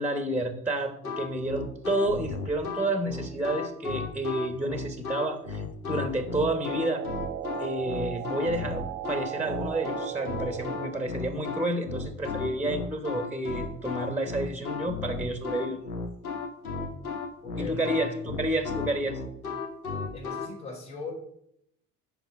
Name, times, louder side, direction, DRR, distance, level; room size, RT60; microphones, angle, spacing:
voice 1, 0.0-7.0 7.6-15.8 17.6-19.2, right 1 dB, 5° right, 7 dB, 1.2 m, -30 dB
sound 1, 1.0-20.5, left 4 dB, 90° left, 0.9 m, -34 dB
sound 2, 6.2-11.1, right 11 dB, 75° right, 0.6 m, -37 dB
voice 2, 17.4-18.2 20.1-21.1, left 4 dB, 60° left, -3 dB, 4.0 m, -39 dB
8.1 x 5.4 x 5.9 m, 0.73 s
figure-of-eight pair, 55°, 42 cm